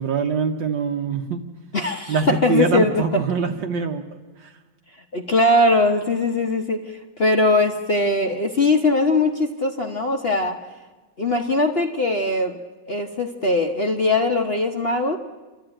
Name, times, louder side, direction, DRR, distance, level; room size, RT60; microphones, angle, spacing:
voice 1, 0.0-1.4 2.1-4.0 4.4-4.5, right 5 dB, 65° right, 3 dB, 1.6 m, -23 dB
voice 2, 1.7-3.0 5.1-10.6 11.2-12.6 12.9-15.2, left 2 dB, 40° left, 3 dB, 0.9 m, -21 dB
29.0 x 13.0 x 8.9 m, 1.3 s
omnidirectional pair, 2.2 m